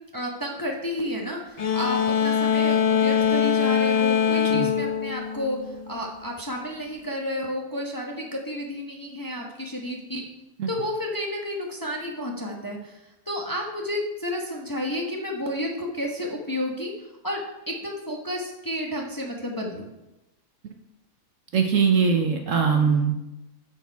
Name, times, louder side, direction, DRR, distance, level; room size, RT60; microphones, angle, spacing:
voice 1, 0.1-5.6 5.9-10.2 10.7-13.0 13.3-16.9 17.2-19.9, left 1 dB, 15° left, 0 dB, 0.9 m, -31 dB
sound 1, 1.6-6.0, left 7 dB, 70° left, 0.3 m, -23 dB
voice 2, 21.5-23.1, right 6 dB, 60° right, 4 dB, 1.0 m, -21 dB
12.0 x 4.7 x 4.6 m, 0.98 s
omnidirectional pair, 1.7 m